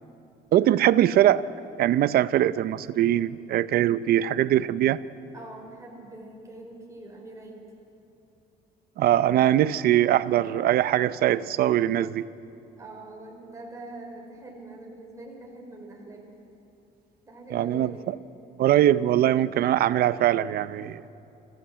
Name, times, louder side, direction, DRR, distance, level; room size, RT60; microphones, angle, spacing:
voice 1, 0.5-1.4 1.8-5.0 9.0-12.3 17.5-18.0 18.6-21.0, right 12 dB, 65° right, 16 dB, 0.6 m, -22 dB
voice 2, 5.3-7.6 8.9-9.3 12.8-16.3 17.2-18.1 19.5-19.8, right 2 dB, 20° right, 0 dB, 4.1 m, -44 dB
26.5 x 15.5 x 7.5 m, 2.7 s
cardioid pair, 110°, 17 cm